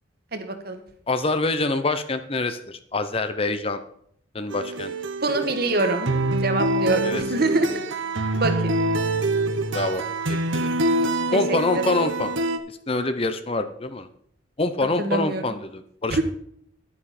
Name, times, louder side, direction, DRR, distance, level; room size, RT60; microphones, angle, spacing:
voice 1, 0.3-0.8 5.2-6.1 6.4-7.8 8.3-8.7 11.3-11.9 15.0-15.5 16.1-16.2, right 2 dB, 50° right, 7 dB, 1.7 m, -25 dB
voice 2, 1.1-3.8 4.3-4.9 7.0-7.2 9.7-10.0 10.3-10.7 11.3-12.3 12.9-14.1 14.6-16.2, left 2 dB, 30° left, 10 dB, 0.7 m, -25 dB
sound 1, 4.5-12.6, right 2 dB, 75° right, 1.1 m, -25 dB
11.0 x 9.7 x 4.3 m, 0.67 s
head